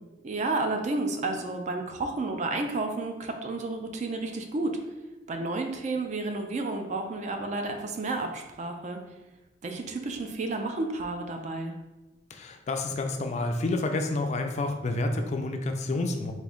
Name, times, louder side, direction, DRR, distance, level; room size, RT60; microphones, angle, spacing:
voice 1, 0.2-4.8 5.3-9.0 9.6-11.8, right 2 dB, 40° right, 4 dB, 0.4 m, -31 dB
voice 2, 12.3-16.3, left 2 dB, 40° left, 5 dB, 0.3 m, -29 dB
3.6 x 2.5 x 3.5 m, 1.1 s
head